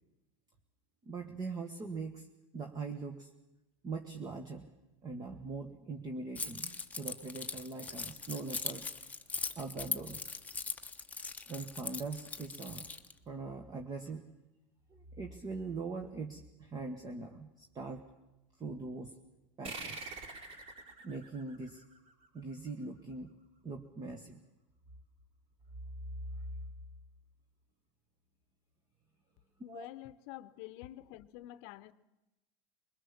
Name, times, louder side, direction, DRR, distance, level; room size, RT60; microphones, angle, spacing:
voice 1, 1.0-2.3 2.5-3.3 3.8-4.7 5.0-8.9 9.5-10.3 11.5-12.9 13.3-14.3 14.9-18.1 18.6-19.2 19.6-20.1 21.0-21.8 22.3-23.3 23.6-24.4 29.7-29.9, right 4 dB, 25° right, 1.6 m, -42 dB
Keys jangling, 6.4-13.1, left 4 dB, 10° left, 1.1 m, -40 dB
sound 1, 19.6-22.7, right 3 dB, 45° right, 4.9 m, -46 dB
voice 2, 29.6-31.9, left 15 dB, 60° left, 0.8 m, -48 dB
22.0 x 20.5 x 7.2 m
hypercardioid pair, 110°, 15 cm